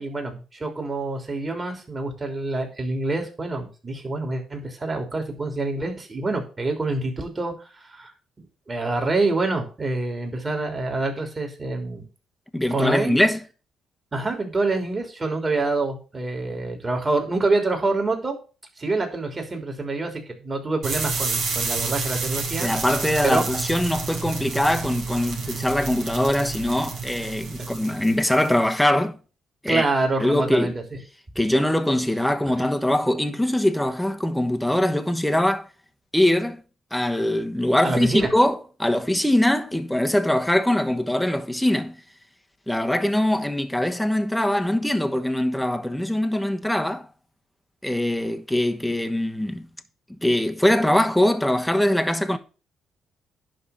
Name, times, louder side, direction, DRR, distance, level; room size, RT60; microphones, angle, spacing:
voice 1, 0.0-7.5 7.9-8.1 8.7-12.1 12.7-13.2 14.1-18.4 18.8-22.7 23.2-23.4 29.7-30.8 32.5-32.6 37.8-38.3, right 2 dB, 30° right, 3.2 m, -26 dB
voice 2, 12.5-13.4 22.6-29.2 29.6-29.8 30.2-30.8 31.4-35.7 36.1-36.6 36.9-42.0 42.7-47.1 47.8-49.7 50.2-52.4, left 1 dB, 5° left, 1.2 m, -22 dB
sound 1, 20.8-28.7, right 4 dB, 70° right, 4.3 m, -30 dB
11.0 x 3.7 x 7.0 m
cardioid pair, 90°, 0 cm